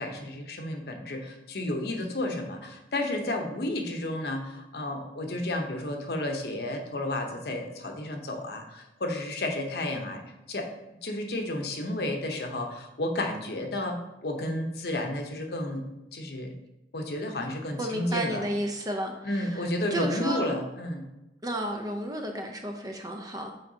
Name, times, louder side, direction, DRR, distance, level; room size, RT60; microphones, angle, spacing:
voice 1, 0.0-10.2 10.5-10.7 11.0-15.8 16.1-16.5 16.9-18.4 19.2-21.0, left 1 dB, 60° left, 4 dB, 0.8 m, -32 dB
voice 2, 17.8-20.4 21.4-23.6, right 1 dB, 20° right, 3 dB, 0.5 m, -32 dB
7.5 x 4.5 x 2.7 m, 0.98 s
head